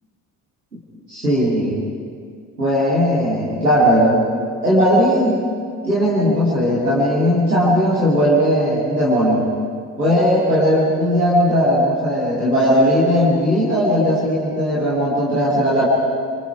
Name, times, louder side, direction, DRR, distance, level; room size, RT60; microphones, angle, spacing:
voice 1, 1.1-1.8 2.6-4.2 4.6-5.4 5.8-9.5 10.0-15.9, equal, 90° right, -8 dB, 2.4 m, -17 dB
28.5 x 24.5 x 5.0 m, 2.2 s
figure-of-eight pair, 40°, 45 cm